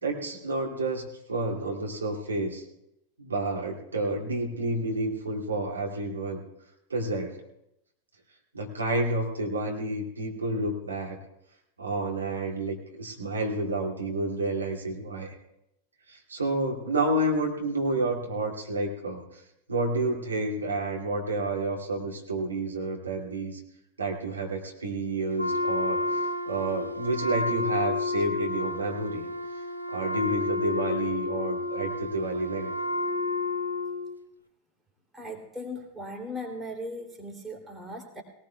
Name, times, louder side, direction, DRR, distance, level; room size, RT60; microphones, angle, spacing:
voice 1, 0.0-2.6 3.2-6.4 6.9-7.4 8.5-11.2 11.8-15.4 16.1-19.4 19.7-23.6 24.0-29.3 29.6-32.7, right 2 dB, 75° right, -1 dB, 2.5 m, -30 dB
Wind instrument woodwind instrument, 25.4-34.2, left 2 dB, 85° left, 0.8 m, -30 dB
voice 2, 35.1-38.2, left 1 dB, 10° right, 0 dB, 2.9 m, -38 dB
21.5 x 18.5 x 2.3 m, 0.84 s
figure-of-eight pair, 90°, 0 cm